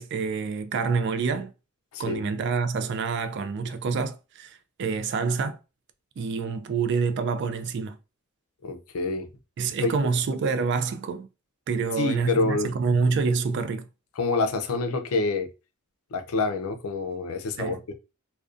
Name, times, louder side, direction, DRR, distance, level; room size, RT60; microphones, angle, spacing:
voice 1, 0.0-1.5 2.0-5.6 6.2-8.0 9.6-11.3 11.7-13.9 17.6-17.8, right 5 dB, 55° right, 0.3 m, -27 dB
voice 2, 1.9-2.3 8.6-9.3 9.8-9.9 12.0-12.7 14.2-15.5 16.1-17.9, left 3 dB, 85° left, 0.4 m, -27 dB
2.4 x 2.2 x 2.4 m
head